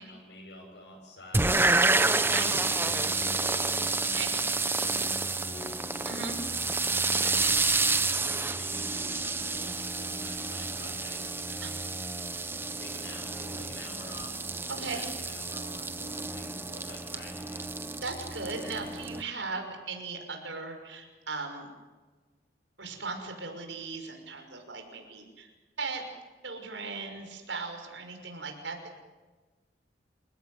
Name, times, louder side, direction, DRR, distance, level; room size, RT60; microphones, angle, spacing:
voice 1, 0.0-1.8 2.3-4.2 4.6-6.1 6.7-17.7, left 1 dB, 70° left, -3 dB, 7.1 m, -48 dB
sound 1, 1.3-19.2, right 3 dB, 10° right, 1.0 m, -29 dB
voice 2, 2.2-2.6 4.0-4.4 6.0-6.4 11.6-11.7 14.7-15.1 18.0-21.7 22.8-25.5 25.8-26.0 26.4-28.9, right 4 dB, 85° right, 4 dB, 5.9 m, -38 dB
29.5 x 17.5 x 9.5 m, 1.3 s
head